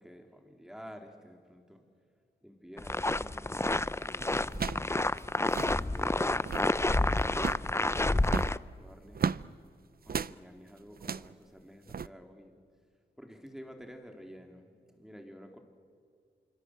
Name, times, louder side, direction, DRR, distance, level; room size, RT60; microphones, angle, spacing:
voice 1, 0.0-1.8 2.4-4.9 5.6-9.2 10.1-12.5 13.2-15.6, equal, 5° right, 4 dB, 3.7 m, -51 dB
sound 1, 2.8-8.6, left 2 dB, 15° left, 0.6 m, -29 dB
sound 2, 3.5-3.8 4.5-4.9 5.2-5.3 5.4-5.8 6.3-6.8 7.3-7.7 8.2-9.5 10.1-10.4 11.0-11.3 11.9-12.1, right 6 dB, 55° right, 0.6 m, -34 dB
26.5 x 24.5 x 7.8 m, 2.3 s
cardioid pair, 55°, 18 cm